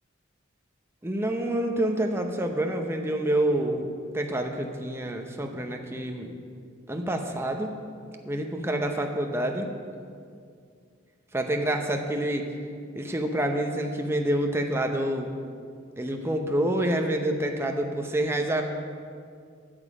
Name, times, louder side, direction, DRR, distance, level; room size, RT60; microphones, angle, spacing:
voice 1, 1.0-6.3 6.9-7.7 8.2-9.7 11.3-12.5 12.9-15.3 16.0-18.6, right 1 dB, 15° right, 3 dB, 0.8 m, -27 dB
12.5 x 7.1 x 4.9 m, 2.2 s
head